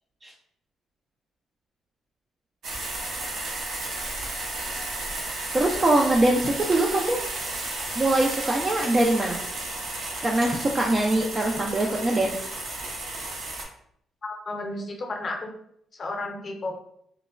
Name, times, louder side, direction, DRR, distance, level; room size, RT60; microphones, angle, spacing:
sound 1, 2.6-13.6, right 2 dB, 70° right, 0.6 m, -33 dB
voice 1, 5.5-7.2 8.0-9.4 10.2-12.5, right 2 dB, 30° right, 0 dB, 0.3 m, -23 dB
voice 2, 14.2-15.5 16.0-16.8, left 2 dB, 40° left, 2 dB, 0.6 m, -32 dB
3.0 x 2.1 x 2.3 m, 0.70 s
cardioid pair, 90°, 0 cm